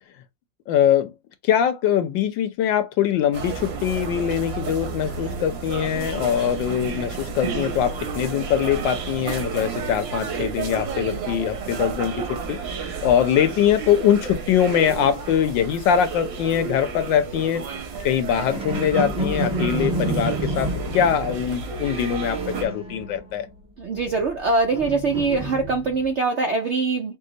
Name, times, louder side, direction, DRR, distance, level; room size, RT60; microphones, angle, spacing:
voice 1, 0.7-1.1 1.4-12.6 13.0-17.6 18.0-23.5, left 9 dB, 75° left, 1.4 m, -22 dB
sound 1, 3.3-22.7, right 5 dB, 85° right, 1.9 m, -31 dB
sound 2, 17.9-23.5 23.8-26.1, right 2 dB, 5° right, 0.6 m, -30 dB
voice 2, 23.8-27.2, right 3 dB, 65° right, 0.7 m, -23 dB
5.4 x 2.0 x 3.8 m
omnidirectional pair, 2.0 m